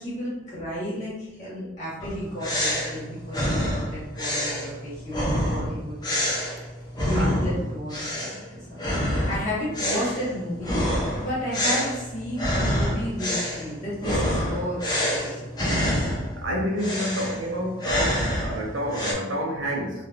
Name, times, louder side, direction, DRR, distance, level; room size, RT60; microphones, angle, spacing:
voice 1, 0.0-6.0 7.0-15.7, equal, 40° left, -9 dB, 1.4 m, -32 dB
sound 1, 2.0-7.6 7.9-8.4 8.8-16.4 16.8-19.1, equal, 20° left, 0.5 m, -27 dB
voice 2, 16.4-19.9, equal, 85° right, 1 dB, 0.6 m, -28 dB
3.2 x 2.2 x 2.4 m, 1.0 s
head